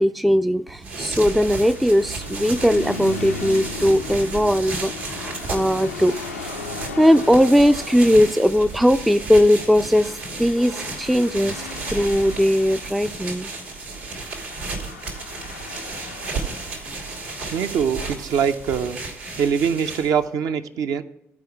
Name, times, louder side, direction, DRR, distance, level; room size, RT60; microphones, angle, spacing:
voice 1, 0.0-6.6 7.0-11.6 11.9-13.5, equal, ahead, 12 dB, 0.3 m, -19 dB
sound 1, 0.7-20.3, right 3 dB, 75° right, 1.6 m, -33 dB
sound 2, 1.5-19.9, left 4 dB, 85° left, 0.4 m, -38 dB
voice 2, 17.5-19.0 19.4-21.0, right 7 dB, 55° right, 8 dB, 0.6 m, -23 dB
13.5 x 4.9 x 4.6 m, 0.80 s
figure-of-eight pair, 45°, 7 cm